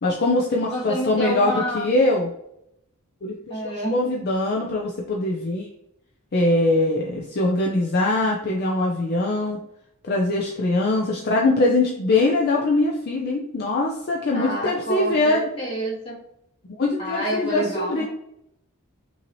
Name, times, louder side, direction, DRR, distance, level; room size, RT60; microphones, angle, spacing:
voice 1, 0.0-2.3 3.2-3.3 3.6-5.7 6.3-9.6 10.0-15.5 16.6-18.0, left 2 dB, 45° left, -1 dB, 0.5 m, -22 dB
voice 2, 0.6-1.9 3.5-4.1 14.3-16.2 17.0-18.1, equal, 25° left, -5 dB, 1.6 m, -28 dB
5.4 x 2.8 x 3.0 m, 0.78 s
head